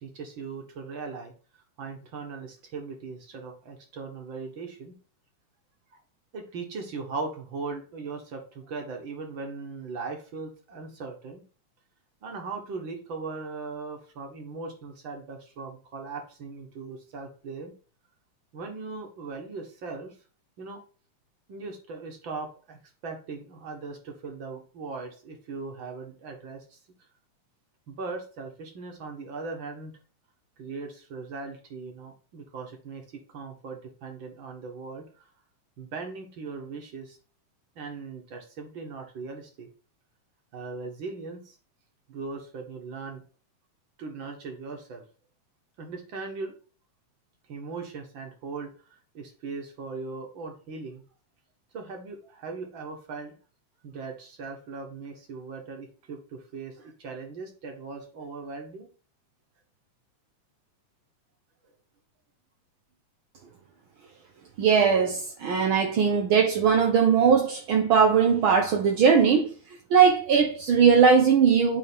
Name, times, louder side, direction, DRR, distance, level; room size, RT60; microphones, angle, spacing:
voice 1, 0.0-1.3 1.8-5.0 6.3-11.4 12.2-17.7 18.5-20.1 20.6-20.8 21.5-26.8 27.9-29.9 30.6-35.2 35.8-37.2 37.8-39.7 40.5-41.6 42.1-43.2 44.0-45.0 45.8-46.5 47.5-48.7 49.1-51.0 51.7-53.3 53.8-58.9, right 4 dB, 45° right, 2.0 m, -39 dB
voice 2, 64.6-69.5 69.9-71.8, right 6 dB, 65° right, 1.3 m, -20 dB
9.7 x 3.6 x 3.6 m
omnidirectional pair, 3.3 m